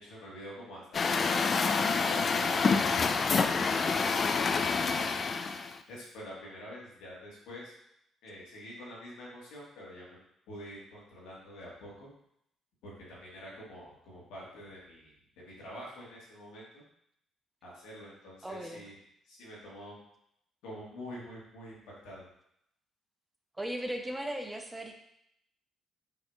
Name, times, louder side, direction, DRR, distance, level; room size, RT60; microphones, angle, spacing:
voice 1, 0.0-5.2 5.9-7.7 8.2-10.2 10.5-12.1 12.8-16.8 17.6-19.0 19.2-20.0 20.6-22.2, equal, 75° left, -5 dB, 1.4 m, -47 dB
Truck, 0.9-5.8, left 4 dB, 45° left, 0.3 m, -27 dB
voice 2, 18.4-18.9 23.6-25.0, right 1 dB, 15° right, 4 dB, 0.6 m, -37 dB
5.5 x 2.8 x 2.3 m, 0.76 s
hypercardioid pair, 55°, 0 cm